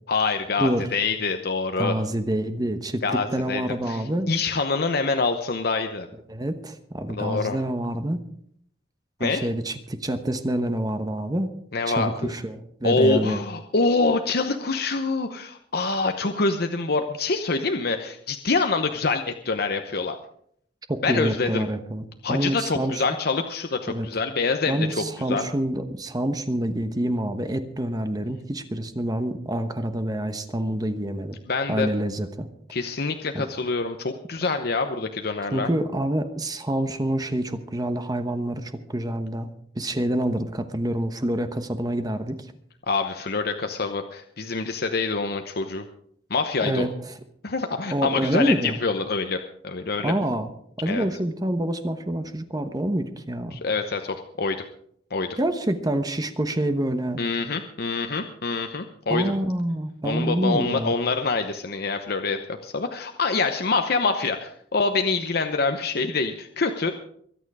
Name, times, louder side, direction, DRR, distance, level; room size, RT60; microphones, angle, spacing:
voice 1, 0.1-2.0 3.0-6.1 7.1-7.6 9.2-9.5 11.7-12.3 12.8-20.2 21.0-21.6 22.2-25.5 31.5-31.9 32.7-35.7 42.9-45.8 46.3-46.9 47.4-50.1 50.9-51.0 53.5-54.6 55.1-55.4 57.2-59.3 60.0-66.9, left 3 dB, 60° left, 6 dB, 0.9 m, -26 dB
voice 2, 1.8-4.3 6.3-8.2 9.2-11.5 11.9-13.4 20.9-23.0 23.9-24.1 24.7-31.4 31.7-32.5 33.3-33.4 35.5-39.5 39.7-42.5 46.6-46.9 47.9-48.8 50.0-50.5 50.8-53.6 55.4-57.2 59.1-61.0, right 1 dB, 20° right, 8 dB, 1.1 m, -27 dB
23.0 x 9.1 x 4.9 m, 0.66 s
head